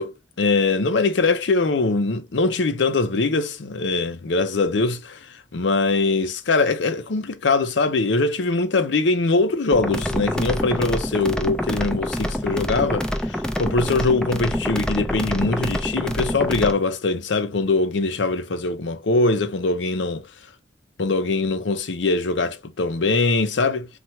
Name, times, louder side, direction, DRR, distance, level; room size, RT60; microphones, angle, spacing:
voice 1, 0.0-5.3 5.5-20.3 21.0-23.9, left 3 dB, 85° left, 0.6 m, -22 dB
sound 1, 9.7-16.7, equal, 5° left, 0.5 m, -26 dB
4.4 x 2.5 x 2.9 m
head